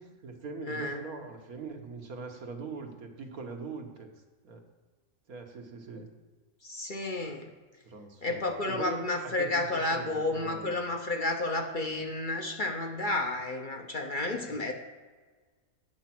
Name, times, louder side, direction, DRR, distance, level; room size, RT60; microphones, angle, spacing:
voice 1, 0.0-4.1 4.4-4.6 5.3-6.1 7.8-10.7 14.5-14.6, right 4 dB, 85° right, 3 dB, 1.7 m, -42 dB
voice 2, 0.7-1.0 6.6-7.5 8.2-14.7, left 2 dB, 40° left, 3 dB, 0.9 m, -31 dB
9.1 x 7.2 x 6.0 m, 1.4 s
omnidirectional pair, 1.5 m